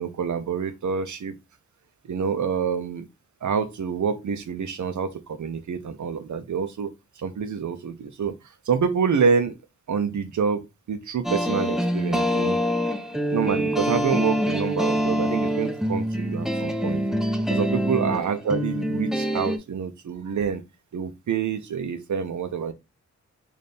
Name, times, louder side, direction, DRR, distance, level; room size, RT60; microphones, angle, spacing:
voice 1, 0.0-1.3 2.1-3.1 3.4-6.9 7.2-8.4 8.7-9.6 9.9-12.6 13.3-17.0 17.5-20.6 20.9-22.7, right 6 dB, 80° right, 0.7 m, -27 dB
sound 1, 11.2-19.6, equal, ahead, 0.5 m, -25 dB
4.2 x 2.6 x 3.3 m
wide cardioid pair, 115°, 30 cm